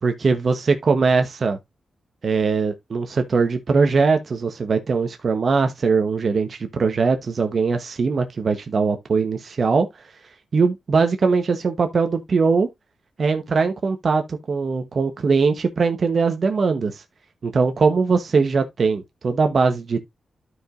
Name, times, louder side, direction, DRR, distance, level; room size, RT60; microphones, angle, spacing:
voice 1, 0.0-1.6 2.2-9.9 10.5-12.7 13.2-17.0 17.4-20.1, right 4 dB, 55° right, 1.0 m, -21 dB
12.5 x 4.9 x 2.5 m
cardioid pair, 80°, 0 cm